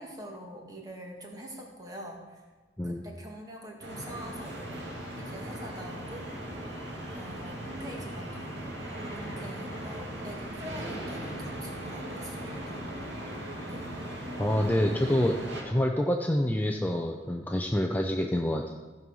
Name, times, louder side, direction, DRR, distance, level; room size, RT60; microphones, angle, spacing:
voice 1, 0.0-2.4 2.8-4.5 5.2-6.3 7.1-8.7 9.2-12.8 13.7-13.9, equal, 20° right, 0 dB, 1.8 m, -44 dB
sound 1, 3.8-15.6, right 1 dB, 75° right, 2.4 m, -38 dB
voice 2, 14.4-15.3 15.6-18.8, left 1 dB, 10° left, 2 dB, 0.5 m, -27 dB
14.5 x 5.4 x 6.2 m, 1.2 s
head